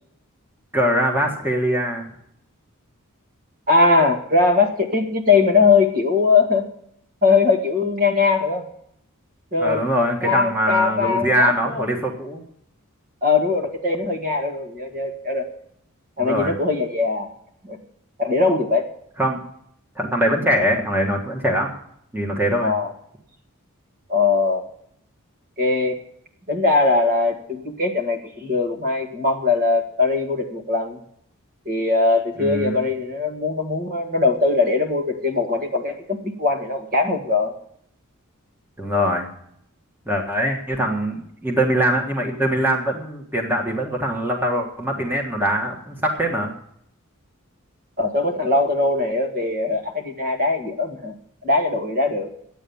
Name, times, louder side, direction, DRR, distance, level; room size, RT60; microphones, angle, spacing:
voice 1, 0.7-2.1 9.6-12.4 16.2-16.5 19.2-19.4 19.9-21.7 22.1-22.7 32.4-32.8 38.8-39.3 40.1-46.5, equal, 10° right, 0 dB, 1.5 m, -22 dB
voice 2, 3.7-6.7 7.2-8.7 9.5-9.8 10.2-11.8 13.2-15.5 16.2-17.3 17.6-17.8 18.2-18.9 22.6-22.9 24.1-24.7 25.6-26.0 26.5-31.0 31.7-37.5 48.0-51.2 51.4-52.3, left 3 dB, 40° right, 2 dB, 1.8 m, -20 dB
11.5 x 9.1 x 7.0 m, 0.70 s
head